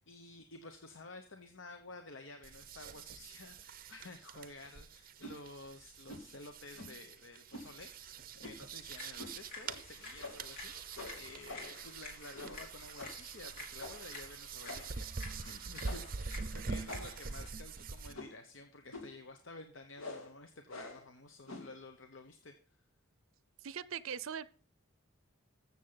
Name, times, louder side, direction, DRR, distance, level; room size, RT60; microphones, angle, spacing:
voice 1, 0.0-22.5, left 2 dB, 65° left, 6 dB, 1.0 m, -52 dB
sound 1, 2.4-18.1, right 4 dB, 40° right, 0.7 m, -45 dB
sound 2, 5.2-5.4 6.1-6.3 6.8-7.1 7.5-7.7 8.4-8.7 9.2-9.4 9.7-9.8 10.2-10.5 11.0-11.8 12.3-12.7 13.0-13.2 13.8-14.1 14.7-15.0 15.8-16.2 16.9-17.3 18.1-18.5 18.9-19.2 20.0-20.3 20.7-21.1 21.5-21.8, left 2 dB, 85° left, 2.8 m, -47 dB
sound 3, 8.9-17.5, left 3 dB, 40° left, 3.5 m, -52 dB
voice 2, 23.6-24.5, right 8 dB, 75° right, 17 dB, 0.5 m, -41 dB
14.5 x 7.2 x 4.0 m, 0.40 s
head